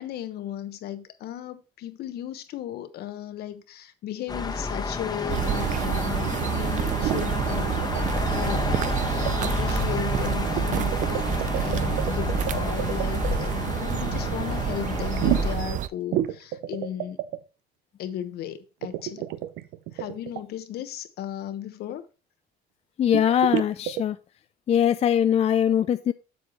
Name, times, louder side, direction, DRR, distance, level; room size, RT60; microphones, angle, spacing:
voice 1, 0.0-8.0 8.3-11.2 11.6-17.2 18.0-19.3 19.9-22.1, left 11 dB, 70° left, 1.0 m, -35 dB
sound 1, 4.3-15.6, left 3 dB, 25° left, 1.1 m, -30 dB
sound 2, 5.3-15.9, right 11 dB, 50° right, 0.4 m, -29 dB
sound 3, 7.0-7.3 7.8-8.2 8.5-9.0 9.3-9.4 10.6-13.4 15.2-15.7 16.1-17.4 18.8-20.4 23.1-24.0, right 14 dB, 90° right, 0.6 m, -29 dB
voice 2, 23.0-24.2 24.7-26.1, left 9 dB, 40° left, 0.4 m, -21 dB
8.0 x 6.8 x 3.1 m
cardioid pair, 110°, 17 cm